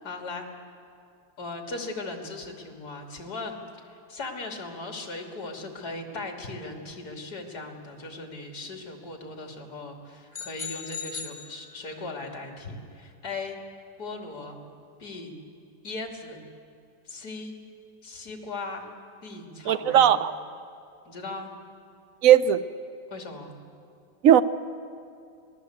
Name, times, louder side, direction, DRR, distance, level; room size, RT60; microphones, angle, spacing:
voice 1, 0.0-0.5 1.4-3.6 4.1-13.6 14.0-14.6 15.0-15.3 15.8-16.4 17.1-17.5 18.0-18.9 19.2-20.2 21.0-21.5 23.1-23.5, left 3 dB, 45° left, 3 dB, 3.3 m, -38 dB
sound 1, 10.3-12.2, left 6 dB, 20° left, 3.1 m, -39 dB
voice 2, 19.6-20.3 22.2-22.6 24.2-24.4, right 10 dB, 60° right, 12 dB, 0.8 m, -17 dB
28.0 x 19.5 x 8.1 m, 2.5 s
omnidirectional pair, 2.4 m